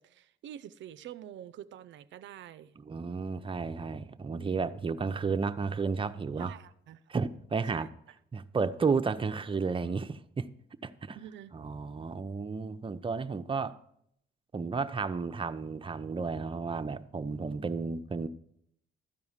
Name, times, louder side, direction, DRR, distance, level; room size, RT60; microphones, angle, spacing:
voice 1, 0.0-2.7 6.4-7.0 7.7-7.9 11.2-11.6, right 11 dB, 70° right, 0.5 m, -46 dB
voice 2, 2.8-6.5 7.1-7.9 8.3-10.5 10.8-11.2 11.5-13.8 14.5-18.3, right 4 dB, 25° right, 0.6 m, -32 dB
13.0 x 4.8 x 7.2 m
cardioid pair, 90°, 20 cm